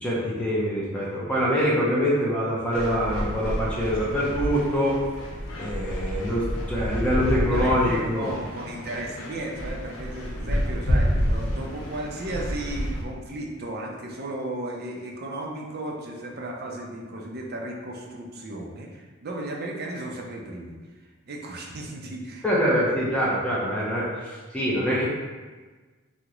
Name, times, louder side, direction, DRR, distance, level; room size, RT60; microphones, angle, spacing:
voice 1, 0.0-5.0 5.6-8.3 22.4-25.0, equal, 5° left, -6 dB, 0.5 m, -24 dB
sound 1, 2.7-13.0, equal, 75° left, 0.6 m, -29 dB
voice 2, 6.9-22.4, right 1 dB, 45° right, 0 dB, 0.4 m, -35 dB
2.9 x 2.1 x 3.6 m, 1.3 s
head